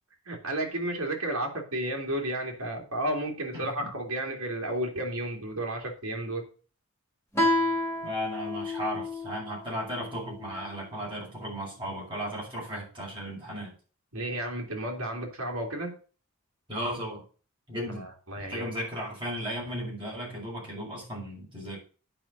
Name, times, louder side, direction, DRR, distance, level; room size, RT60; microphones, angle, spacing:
voice 1, 0.3-6.4 14.1-16.0 18.0-18.7, right 1 dB, 75° right, 1 dB, 2.8 m, -32 dB
voice 2, 3.5-3.9 8.0-13.7 16.7-17.2 17.7-18.1 18.4-21.8, equal, 25° right, -4 dB, 5.9 m, -35 dB
Guitar, 7.3-10.6, left 1 dB, 10° left, 3.3 m, -30 dB
8.9 x 5.5 x 6.6 m, 0.37 s
head